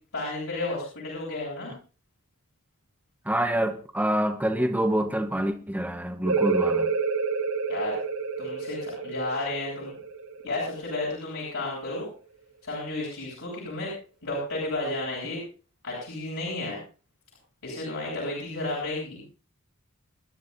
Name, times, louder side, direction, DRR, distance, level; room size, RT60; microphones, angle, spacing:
voice 1, 0.1-1.7 7.7-8.0 8.4-9.9 10.4-12.1 12.6-13.9 14.2-15.4 15.8-16.8 17.6-19.2, left 2 dB, 75° left, 7.9 m, -32 dB
voice 2, 3.2-6.9, right 1 dB, 10° right, 1.1 m, -26 dB
sound 1, 6.2-11.6, right 5 dB, 80° right, 0.8 m, -29 dB
29.0 x 11.0 x 2.7 m
head